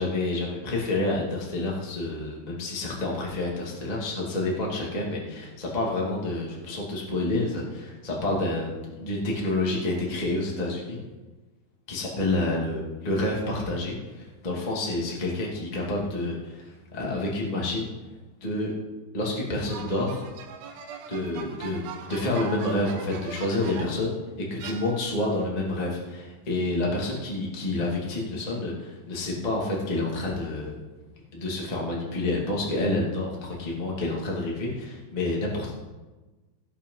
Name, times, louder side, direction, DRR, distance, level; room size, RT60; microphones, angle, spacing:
voice 1, 0.0-11.0 11.9-17.9 18.4-18.7 19.1-20.2 21.1-30.7 31.3-35.7, left 2 dB, 30° left, -3 dB, 0.6 m, -29 dB
sound 1, 19.7-24.1 24.6-25.4, right 6 dB, 85° right, 3.6 m, -40 dB
18.0 x 6.2 x 5.6 m, 1.2 s
omnidirectional pair, 5.5 m